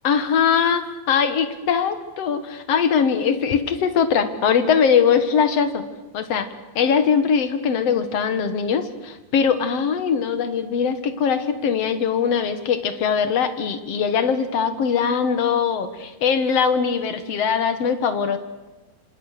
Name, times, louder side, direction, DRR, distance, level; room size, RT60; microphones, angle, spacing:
voice 1, 0.0-5.8 6.1-6.5 6.8-18.4, left 6 dB, 60° left, 10 dB, 1.6 m, -21 dB
28.0 x 26.5 x 6.7 m, 1.2 s
omnidirectional pair, 5.2 m